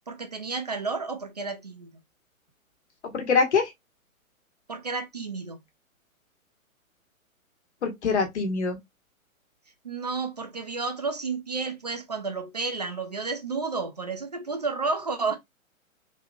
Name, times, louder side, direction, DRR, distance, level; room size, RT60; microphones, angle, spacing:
voice 1, 0.1-1.9 4.7-5.6 9.8-15.4, right 4 dB, 30° right, 0.4 m, -31 dB
voice 2, 3.1-3.7 7.8-8.8, left 5 dB, 50° left, 1.4 m, -24 dB
3.9 x 2.8 x 2.3 m
figure-of-eight pair, 130°, 42 cm